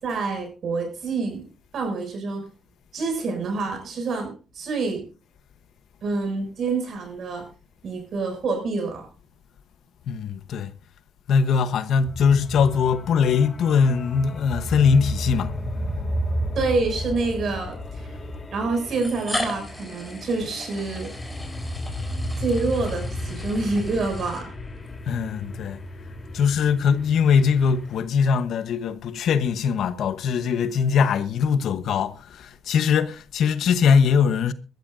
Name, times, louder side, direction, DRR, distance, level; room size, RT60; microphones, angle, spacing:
voice 1, 0.0-1.4 1.7-2.4 2.9-5.0 6.0-7.5 7.8-9.1 16.5-18.1 18.5-21.1 22.4-24.5, right 3 dB, 60° right, 6.4 m, -27 dB
voice 2, 10.1-10.7 11.3-15.5 25.1-25.8 26.3-34.5, left 6 dB, 70° left, 1.0 m, -21 dB
sound 1, 12.1-28.0, equal, 30° left, 3.3 m, -33 dB
sound 2, 15.4-15.6 16.6-16.7 17.9-18.0 18.9-24.9, left 1 dB, 5° left, 4.3 m, -36 dB
21.5 x 13.0 x 2.6 m
cardioid pair, 90°, 0 cm